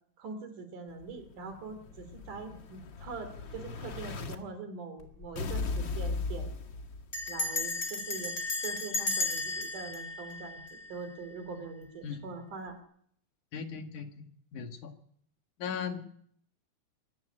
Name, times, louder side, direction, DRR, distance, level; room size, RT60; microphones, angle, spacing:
voice 1, 0.2-6.5 7.3-8.4 8.6-12.8, right 4 dB, 80° right, 7 dB, 4.6 m, -43 dB
Explosion, 1.0-4.4 5.4-7.4, left 4 dB, 45° left, 1.8 m, -37 dB
Bell, 5.0-5.4 5.6-5.7 6.0-6.3 7.1-11.2, left 3 dB, 30° left, 3.0 m, -34 dB
voice 2, 13.5-14.9 15.6-16.1, left 6 dB, 75° left, 5 dB, 3.4 m, -38 dB
23.5 x 11.0 x 9.9 m, 0.66 s
omnidirectional pair, 3.6 m